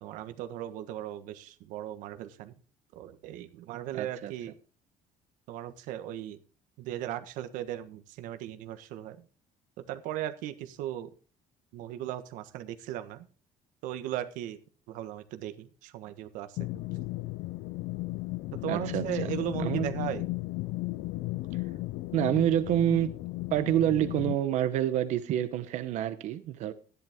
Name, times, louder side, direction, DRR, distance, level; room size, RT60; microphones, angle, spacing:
voice 1, 0.0-2.5 2.9-4.6 5.5-6.4 6.8-9.2 9.8-11.1 11.7-13.3 13.8-14.6 14.9-16.7 18.6-20.2, right 12 dB, 85° right, 1.4 m, -37 dB
voice 2, 3.9-4.3 18.7-19.0 19.6-19.9 22.1-23.1 23.5-26.7, right 12 dB, 65° right, 0.9 m, -27 dB
sound 1, 16.6-24.4, left 19 dB, 75° left, 0.5 m, -35 dB
13.5 x 11.0 x 3.6 m
cardioid pair, 160°, 13 cm